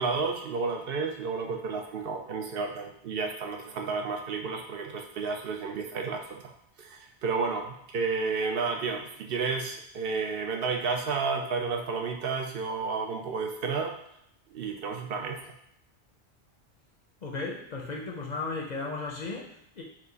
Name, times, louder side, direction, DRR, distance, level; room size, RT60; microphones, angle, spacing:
voice 1, 0.0-6.5 6.8-13.9 14.5-15.6, right 4 dB, 65° right, 3 dB, 0.7 m, -31 dB
voice 2, 17.2-19.8, left 3 dB, 50° left, 0 dB, 0.6 m, -35 dB
4.6 x 2.4 x 3.8 m, 0.73 s
omnidirectional pair, 1.1 m